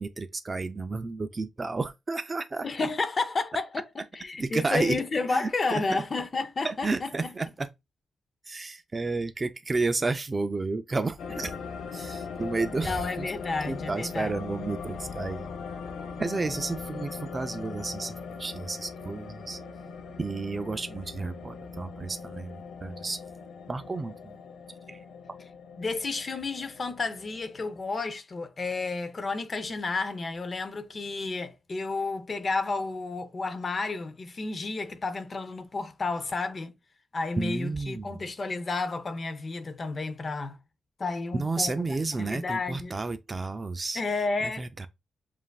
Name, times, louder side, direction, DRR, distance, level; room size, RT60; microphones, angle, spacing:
voice 1, 0.0-2.7 4.4-5.0 5.3-6.0 6.6-7.7 8.4-11.5 11.9-13.3 13.6-15.5 16.2-19.6 20.2-23.2 23.7-24.4 24.9-25.0 26.3-26.4 37.4-38.2 41.3-44.0 44.4-44.9, right 3 dB, 20° right, 0.3 m, -31 dB
voice 2, 2.6-3.7 4.1-7.1 12.8-14.3 25.8-36.7 37.1-40.6 41.0-41.7 42.2-43.0 44.0-44.7, left 3 dB, 30° left, 0.5 m, -31 dB
sound 1, 11.2-27.8, left 5 dB, 90° left, 0.5 m, -40 dB
7.3 x 2.4 x 2.3 m
wide cardioid pair, 170°, 0 cm